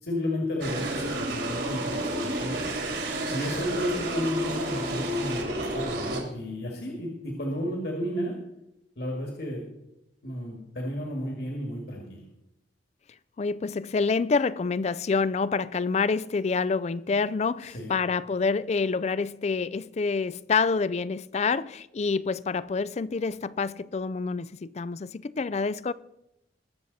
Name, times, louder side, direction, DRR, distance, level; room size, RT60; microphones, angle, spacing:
voice 1, 0.0-2.6 3.3-8.4 9.0-9.6 10.2-12.2 17.6-17.9, equal, 60° left, 2.2 m, -32 dB
sound 1, 0.6-6.2, right 1 dB, 65° right, 2.8 m, -30 dB
voice 2, 13.4-25.9, left 4 dB, 35° left, 0.4 m, -27 dB
21.0 x 7.4 x 4.1 m
head